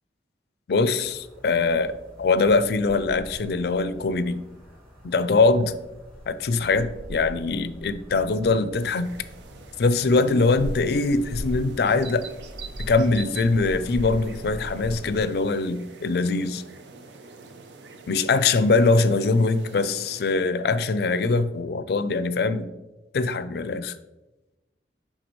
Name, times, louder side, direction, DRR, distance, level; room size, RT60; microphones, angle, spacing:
voice 1, 0.7-4.5 5.0-5.7 6.3-9.1 9.8-12.3 12.8-16.6 18.1-22.7 23.1-23.9, left 3 dB, 60° left, 13 dB, 0.4 m, -22 dB
sound 1, 1.0-15.2, equal, 15° right, 1.7 m, -40 dB
sound 2, 8.7-20.4, right 4 dB, 80° right, 0.6 m, -45 dB
9.1 x 3.7 x 3.0 m, 1.1 s
head